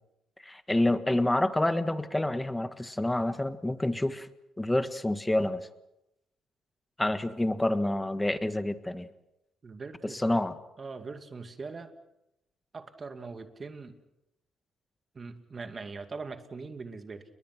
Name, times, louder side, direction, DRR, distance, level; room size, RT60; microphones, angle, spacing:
voice 1, 0.4-4.3 4.6-5.7 7.0-9.1 10.0-10.6, left 1 dB, 10° left, 10 dB, 1.7 m, -28 dB
voice 2, 9.6-10.3 10.8-11.9 12.7-14.0 15.1-17.2, right 4 dB, 35° right, 7 dB, 2.4 m, -41 dB
29.5 x 22.0 x 6.2 m, 0.88 s
cardioid pair, 90°, 0 cm